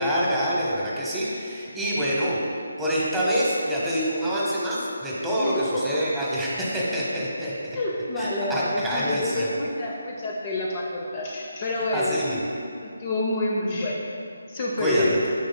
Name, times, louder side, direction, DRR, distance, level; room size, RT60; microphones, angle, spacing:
voice 1, 0.0-2.4 2.8-7.8 8.1-9.5 11.8-12.4 14.8-15.3, equal, 5° right, -7 dB, 0.9 m, -26 dB
voice 2, 5.4-5.9 7.7-12.4 12.8-14.0 14.5-15.2, left 1 dB, 30° left, -2 dB, 0.5 m, -28 dB
9.2 x 5.0 x 2.2 m, 2.6 s
figure-of-eight pair, 155°, 0 cm